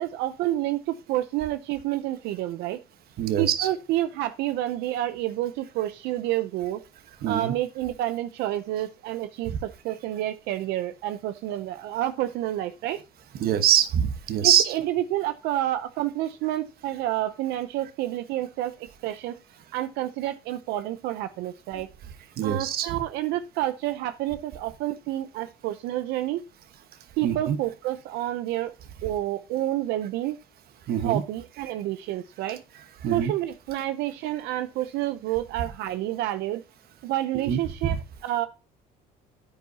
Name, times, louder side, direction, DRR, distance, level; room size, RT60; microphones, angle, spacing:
voice 1, 0.0-2.8 3.4-6.8 7.3-13.0 14.4-19.4 19.7-21.9 22.4-26.4 27.2-28.7 29.0-30.4 31.0-32.6 33.1-36.6 37.0-38.0 38.2-38.5, right 14 dB, 90° right, 11 dB, 0.6 m, -29 dB
voice 2, 3.2-3.8 7.2-7.5 9.5-9.6 13.4-14.8 22.4-23.0 27.2-27.6 30.9-31.2 31.6-31.7 33.0-33.3 37.3-37.9, right 9 dB, 65° right, 11 dB, 1.3 m, -24 dB
10.0 x 9.4 x 2.8 m, 0.31 s
cardioid pair, 110°, 17 cm